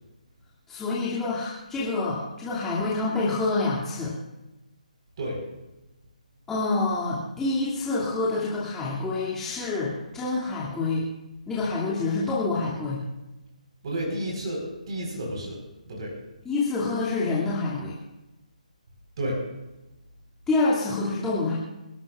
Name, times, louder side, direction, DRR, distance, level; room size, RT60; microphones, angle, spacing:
voice 1, 0.7-4.1 6.5-11.1 11.5-13.0 16.4-17.9 20.5-21.5, left 3 dB, 10° left, -8 dB, 2.5 m, -27 dB
voice 2, 13.8-15.6 15.8-16.1 19.2-19.4, right 1 dB, 40° right, -2 dB, 4.4 m, -31 dB
28.5 x 13.0 x 2.5 m, 0.99 s
figure-of-eight pair, 145°, 4 cm